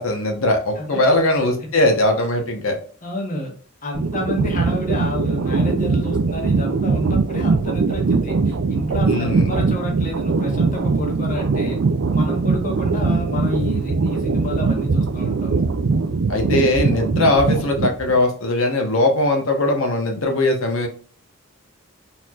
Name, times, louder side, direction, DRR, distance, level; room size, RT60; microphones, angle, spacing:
voice 1, 0.0-2.8 9.1-9.5 16.3-20.9, left 2 dB, 65° left, 3 dB, 1.0 m, -20 dB
voice 2, 0.8-1.1 3.0-3.5 3.8-11.8 12.1-15.6, left 1 dB, 35° left, 1 dB, 1.2 m, -29 dB
sound 1, 3.9-18.2, right 4 dB, 55° right, 0.4 m, -21 dB
4.3 x 4.3 x 2.4 m, 0.42 s
head